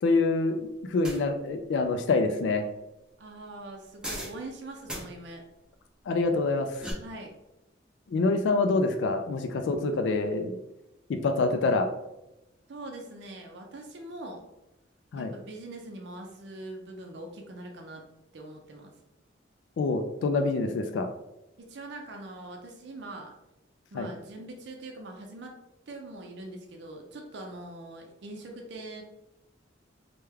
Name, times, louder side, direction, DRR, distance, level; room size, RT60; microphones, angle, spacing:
voice 1, 0.0-2.6 6.1-6.9 8.1-10.5 11.1-11.9 15.1-15.3 19.8-21.1 23.9-24.1, left 3 dB, 70° left, 6 dB, 0.3 m, -26 dB
sound 1, 1.0-1.2 4.0-4.4 4.9-5.0 6.5-6.9, equal, 5° right, 0.6 m, -37 dB
voice 2, 3.2-5.4 7.0-7.3 12.7-14.5 15.2-18.0 18.3-18.9 21.6-23.3 23.9-25.6 25.9-29.0, right 2 dB, 60° right, 1 dB, 0.5 m, -42 dB
3.3 x 2.2 x 3.3 m, 0.92 s
head